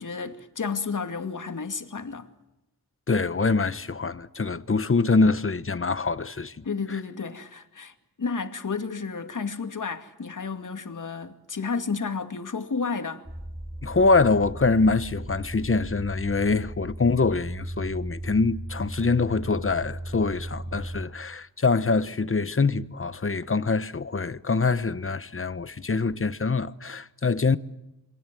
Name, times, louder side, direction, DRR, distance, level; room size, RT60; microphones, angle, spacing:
voice 1, 0.0-2.3 6.6-13.2, left 5 dB, 55° left, 2.4 m, -32 dB
voice 2, 3.1-7.0 13.8-27.6, left 4 dB, 35° left, 1.2 m, -24 dB
sound 1, 13.2-21.0, right 1 dB, 10° right, 7.8 m, -37 dB
28.5 x 23.5 x 7.7 m
cardioid pair, 70°, 37 cm